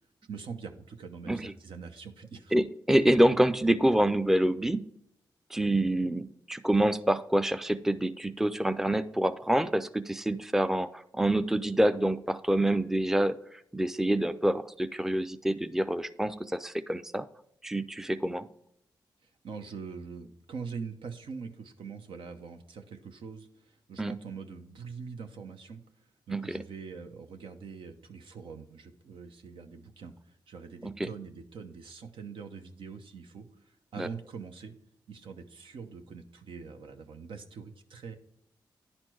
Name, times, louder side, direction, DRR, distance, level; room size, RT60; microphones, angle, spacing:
voice 1, 0.2-2.5 19.2-25.8 26.3-34.7 35.1-38.2, right 5 dB, 80° right, 6 dB, 0.9 m, -43 dB
voice 2, 2.5-4.9 5.5-17.3 17.6-18.5 24.0-24.1 26.3-26.6 30.8-31.1 34.0-34.1, right 1 dB, 5° right, 11 dB, 0.5 m, -27 dB
10.0 x 4.4 x 4.6 m, 0.75 s
cardioid pair, 60°, 9 cm